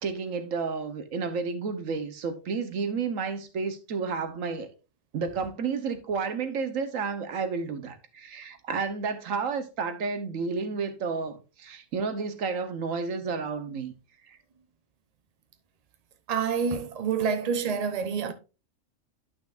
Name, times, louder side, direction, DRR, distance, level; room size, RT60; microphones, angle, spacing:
voice 1, 0.0-4.7 5.1-13.9 14.3-14.4, right 5 dB, 85° right, 1.4 m, -31 dB
voice 2, 16.3-18.3, right 6 dB, 35° right, 0.8 m, -27 dB
11.5 x 5.9 x 2.5 m
omnidirectional pair, 1.3 m